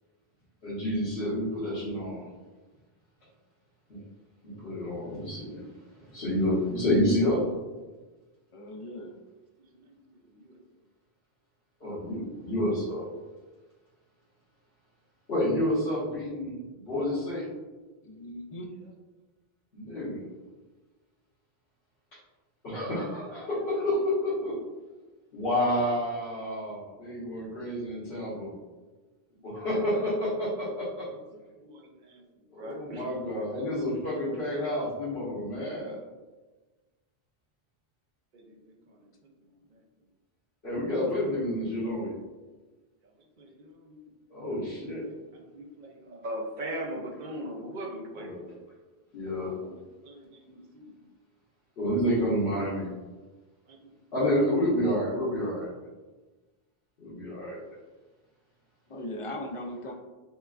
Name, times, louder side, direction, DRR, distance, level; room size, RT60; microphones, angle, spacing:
voice 1, 0.6-2.3 3.9-4.0 4.4-5.6 6.0-7.4 11.8-13.1 15.3-16.6 16.8-17.5 19.7-20.3 22.6-24.6 25.3-28.5 29.4-31.1 32.5-36.0 40.6-42.1 44.3-45.1 48.2-48.4 49.1-49.5 51.8-52.9 54.1-55.7 57.0-57.6, left 1 dB, 80° left, -12 dB, 1.4 m, -29 dB
voice 2, 8.5-9.1 18.0-18.7 58.9-59.9, left 1 dB, 55° left, 1 dB, 0.3 m, -38 dB
voice 3, 9.6-10.6 27.3-27.5 29.3-29.6 31.3-32.2 32.6-33.1 38.3-39.8 43.0-44.1 44.7-48.3 49.6-49.7 50.0-51.0 53.7-54.0, right 1 dB, 55° right, 1 dB, 0.7 m, -42 dB
5.7 x 2.4 x 2.4 m, 1.2 s
omnidirectional pair, 1.0 m